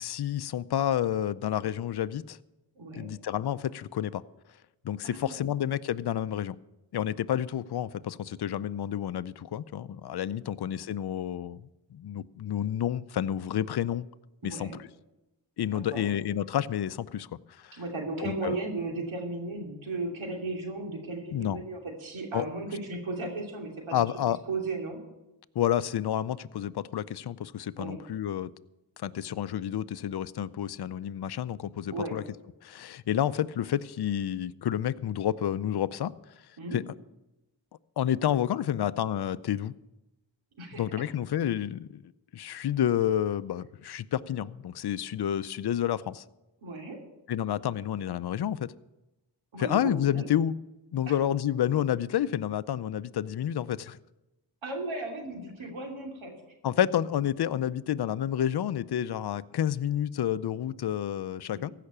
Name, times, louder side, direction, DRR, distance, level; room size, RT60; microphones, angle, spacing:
voice 1, 0.0-2.4 2.9-4.2 4.8-6.6 6.9-11.6 11.9-14.1 14.4-14.7 15.6-17.3 17.6-17.8 18.2-18.5 21.3-21.6 22.3-22.5 23.9-24.4 25.6-28.5 29.0-32.2 32.6-36.1 36.7-36.8 38.0-39.7 40.7-46.2 47.3-48.7 49.6-50.5 50.9-54.0 56.6-61.7, left 10 dB, 60° left, 0.6 m, -29 dB
voice 2, 2.7-3.1 5.0-5.5 14.4-14.8 15.7-16.0 17.7-24.1 24.5-25.0 27.8-28.0 31.9-32.2 36.6-36.8 40.6-41.0 46.6-47.0 49.5-50.3 51.1-51.2 54.6-56.3 61.5-61.7, right 2 dB, 90° right, 2.8 m, -35 dB
15.5 x 5.9 x 9.9 m
cardioid pair, 50°, 46 cm